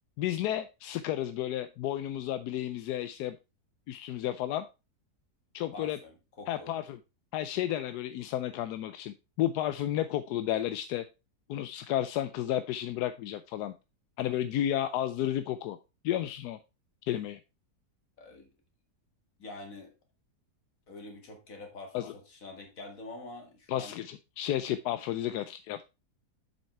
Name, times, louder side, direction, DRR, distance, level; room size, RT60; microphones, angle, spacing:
voice 1, 0.2-3.4 3.9-4.6 5.5-6.0 6.5-7.0 7.3-11.0 11.5-13.7 14.2-15.8 16.0-16.6 17.1-17.4 21.9-22.1 23.7-25.8, left 12 dB, 85° left, 11 dB, 1.1 m, -32 dB
voice 2, 5.7-6.7 18.2-18.5 19.4-19.9 20.9-23.9, left 2 dB, 60° left, 4 dB, 2.4 m, -46 dB
7.3 x 5.7 x 4.4 m, 0.28 s
omnidirectional pair, 1.7 m